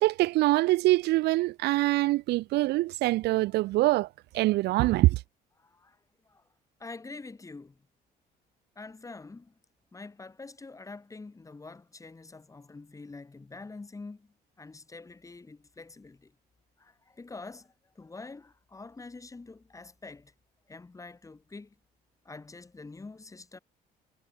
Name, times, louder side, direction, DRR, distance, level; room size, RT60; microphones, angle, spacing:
voice 1, 0.0-4.1 4.3-5.2, right 18 dB, 80° right, 0.9 m, -24 dB
voice 2, 5.6-6.0 6.3-6.4 6.8-7.8 8.8-9.5 9.9-16.3 16.8-20.3 20.7-21.7 22.2-23.6, left 3 dB, 20° left, 4.7 m, -46 dB
cardioid pair, 110°, 17 cm